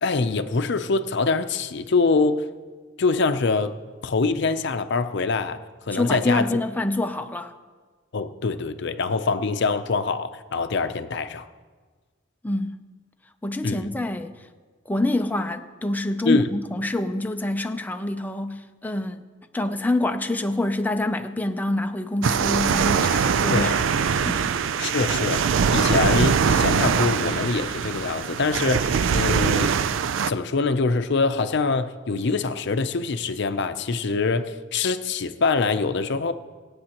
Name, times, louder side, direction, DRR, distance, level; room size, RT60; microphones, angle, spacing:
voice 1, 0.0-2.5 3.0-3.7 4.0-5.6 5.9-6.5 8.1-11.5 13.6-13.9 16.2-16.5 23.5-23.7 24.8-25.5 25.7-29.7 30.3-36.3, left 4 dB, 65° left, 9 dB, 0.6 m, -24 dB
voice 2, 5.9-7.5 12.4-12.7 13.4-14.3 14.9-19.2 19.5-23.7 24.2-24.5, left 2 dB, 10° left, 6 dB, 0.5 m, -26 dB
sound 1, 22.2-30.3, right 6 dB, 75° right, 0.4 m, -22 dB
24.0 x 8.6 x 3.0 m, 1.5 s
head